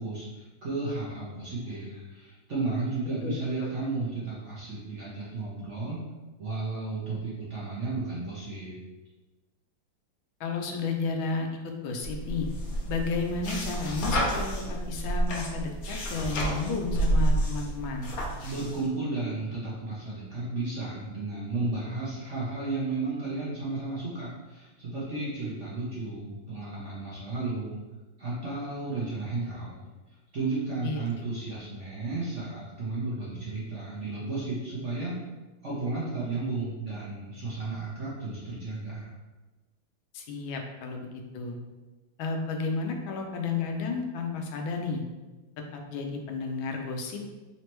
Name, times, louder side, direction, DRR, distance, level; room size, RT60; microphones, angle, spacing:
voice 1, 0.0-6.0 6.4-8.8 18.4-27.8 28.2-29.8 30.3-35.1 35.6-39.1, right 3 dB, 55° right, -7 dB, 0.9 m, -33 dB
voice 2, 3.2-3.7 10.4-12.5 12.9-18.1 30.8-31.0 40.1-41.6 42.2-45.0 45.7-47.2, left 4 dB, 85° left, 3 dB, 1.4 m, -32 dB
sound 1, 12.0-18.8, right 1 dB, 60° left, 1.0 m, -29 dB
4.0 x 3.2 x 3.0 m, 1.2 s
omnidirectional pair, 2.2 m